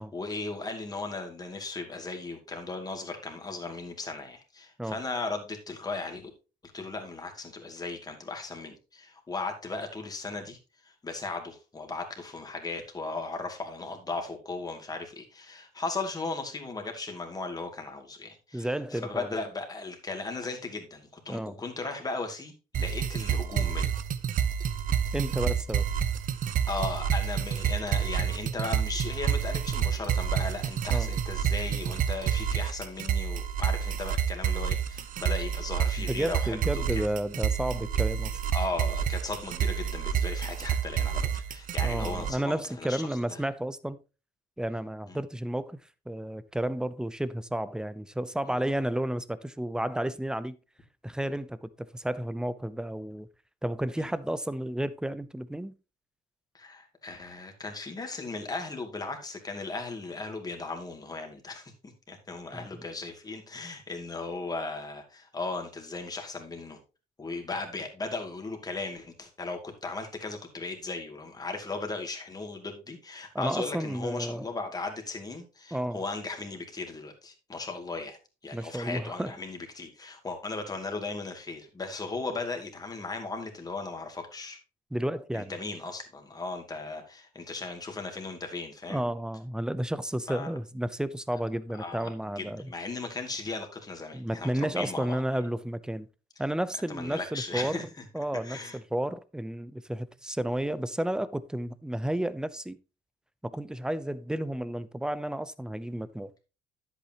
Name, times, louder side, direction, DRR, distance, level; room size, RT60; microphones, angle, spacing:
voice 1, 0.0-6.3 6.7-10.6 10.8-23.9 26.7-37.0 38.5-43.4 45.1-45.2 48.5-48.6 54.0-54.1 56.5-66.8 67.2-84.6 85.3-89.0 90.3-90.5 91.7-95.2 96.9-98.0 98.4-98.8, left 3 dB, 20° left, 2.5 m, -37 dB
voice 2, 18.5-19.3 21.3-21.6 25.1-25.9 30.9-31.1 36.0-38.4 41.8-44.0 44.6-45.8 46.1-50.6 51.0-53.3 53.6-55.8 62.5-62.7 73.3-74.5 75.7-76.0 78.5-79.3 84.9-85.5 88.9-92.7 94.1-96.1 96.4-97.8 98.1-102.8 103.4-106.3, right 1 dB, 5° right, 0.6 m, -32 dB
sound 1, 22.7-42.3, right 8 dB, 50° right, 0.9 m, -29 dB
10.5 x 8.4 x 2.9 m
cardioid pair, 110°, 17 cm